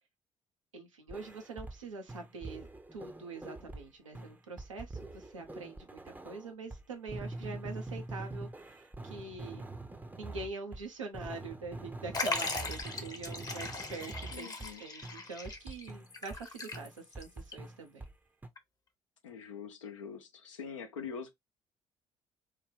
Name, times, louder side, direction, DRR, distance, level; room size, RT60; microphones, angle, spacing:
voice 1, 0.7-9.7 10.2-18.0, right 3 dB, 85° right, 0.6 m, -44 dB
sound 1, 1.1-1.8 2.1-3.9 4.1-10.9 11.1-14.7 15.0-16.4 16.7-18.1 18.4-18.5, right 2 dB, 10° right, 0.6 m, -44 dB
Liquid, 12.1-17.2 17.5-17.6 18.6-18.7, left 3 dB, 25° left, 0.8 m, -38 dB
voice 2, 14.3-14.8 19.2-21.3, left 6 dB, 80° left, 0.7 m, -44 dB
3.2 x 2.2 x 3.5 m
figure-of-eight pair, 50°, 16 cm